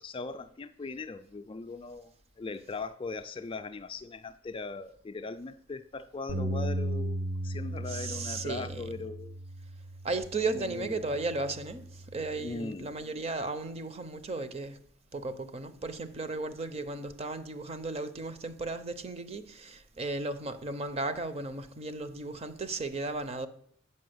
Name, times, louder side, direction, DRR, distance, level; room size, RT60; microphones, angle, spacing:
voice 1, 0.0-9.4 10.5-11.0 12.4-12.9, left 3 dB, 25° left, 0.3 m, -40 dB
Bass guitar, 6.3-12.5, right 1 dB, 70° right, 1.0 m, -37 dB
voice 2, 7.9-8.9 10.0-14.8 15.1-23.5, right 3 dB, 30° right, 0.6 m, -35 dB
8.3 x 5.5 x 7.8 m
head